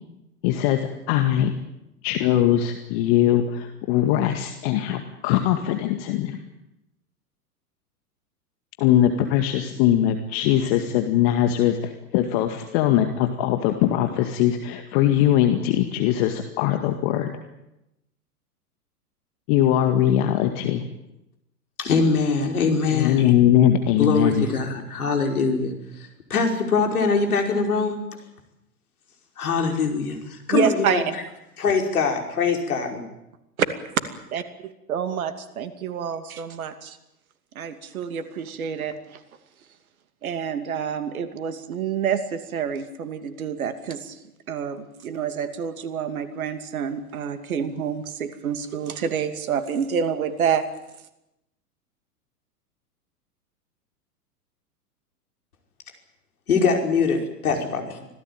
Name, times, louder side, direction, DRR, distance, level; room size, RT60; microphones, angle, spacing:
voice 1, 0.4-1.5 2.0-6.4 8.8-17.3 19.5-20.8 22.9-24.5, left 11 dB, 40° left, 6 dB, 2.1 m, -21 dB
voice 2, 21.8-23.3 24.0-28.0 29.4-31.2 31.6-33.1 56.5-58.1, left 4 dB, 65° left, 3 dB, 5.4 m, -23 dB
voice 3, 30.5-31.0 33.6-33.7 34.3-37.0 37.5-39.2 40.2-44.2 44.5-50.7, right 7 dB, 60° right, 10 dB, 2.7 m, -28 dB
25.5 x 17.5 x 9.2 m, 0.89 s
figure-of-eight pair, 100°, 47 cm